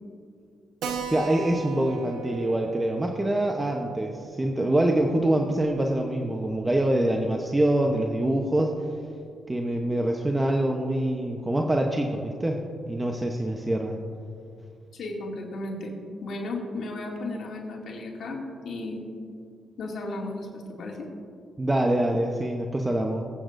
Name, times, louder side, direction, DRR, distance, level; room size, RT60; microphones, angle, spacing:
Keyboard (musical), 0.8-5.9 6.1-6.2 6.5-6.6 6.9-7.0 7.6-7.9, right 6 dB, 85° right, 1.1 m, -38 dB
voice 1, 1.1-8.7 9.5-12.6 12.9-14.0 21.6-23.2, right 1 dB, 15° right, 1 dB, 0.9 m, -25 dB
voice 2, 14.9-15.9 16.2-19.0 19.8-21.1, left 2 dB, 65° left, -2 dB, 2.4 m, -34 dB
22.5 x 8.6 x 2.6 m, 2.4 s
cardioid pair, 80°, 0 cm